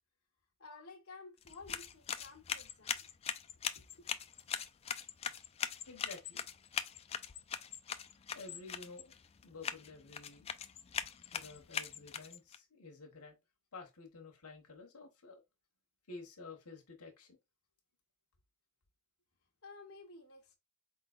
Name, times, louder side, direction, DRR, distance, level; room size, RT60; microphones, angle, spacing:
voice 1, 0.6-3.1 3.7-4.1 19.6-20.6, left 3 dB, 70° left, 1.2 m, -53 dB
sound 1, 1.4-12.6, left 8 dB, 25° left, 0.3 m, -41 dB
voice 2, 5.9-6.5 8.3-9.1 9.4-10.5 11.3-13.4 13.7-15.4 16.1-17.4, left 3 dB, 90° left, 1.2 m, -51 dB
4.3 x 3.9 x 2.4 m
head